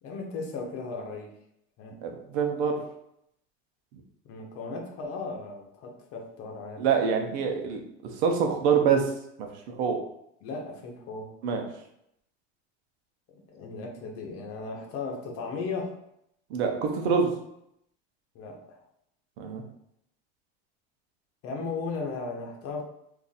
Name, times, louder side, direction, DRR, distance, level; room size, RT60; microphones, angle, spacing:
voice 1, 0.0-1.3 1.8-1.9 4.2-6.8 10.4-11.3 13.3-15.9 18.3-18.8 21.4-22.8, left 4 dB, 45° left, 1 dB, 0.9 m, -36 dB
voice 2, 2.0-2.8 6.8-7.8 8.2-9.1 9.7-10.0 11.4-11.6 16.5-17.3 19.4-19.6, right 6 dB, 85° right, 4 dB, 0.8 m, -25 dB
2.6 x 2.5 x 4.0 m, 0.77 s
supercardioid pair, 140°, 31 cm